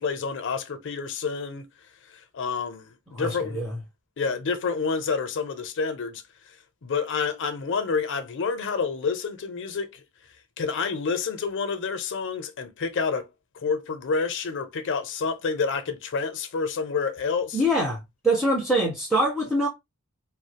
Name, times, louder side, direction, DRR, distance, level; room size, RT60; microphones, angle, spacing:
voice 1, 0.0-1.7 2.3-3.6 4.2-6.2 6.8-10.0 10.6-13.3 13.6-17.6, left 5 dB, 55° left, 0.5 m, -28 dB
voice 2, 3.1-3.8 17.5-19.7, right 1 dB, ahead, 0.5 m, -24 dB
2.3 x 2.0 x 2.8 m
head